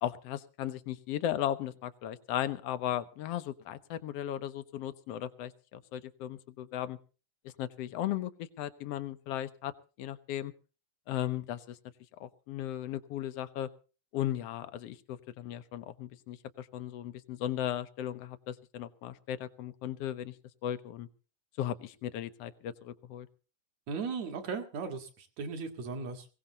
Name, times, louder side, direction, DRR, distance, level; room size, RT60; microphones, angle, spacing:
voice 1, 0.0-7.0 7.6-9.7 10.0-10.5 11.1-11.8 12.2-13.7 14.1-20.3 20.6-21.1 21.6-23.3, left 11 dB, 70° left, 12 dB, 1.6 m, -36 dB
voice 2, 23.9-26.3, right 5 dB, 60° right, 5 dB, 3.0 m, -37 dB
21.5 x 17.0 x 2.9 m, 0.35 s
omnidirectional pair, 3.6 m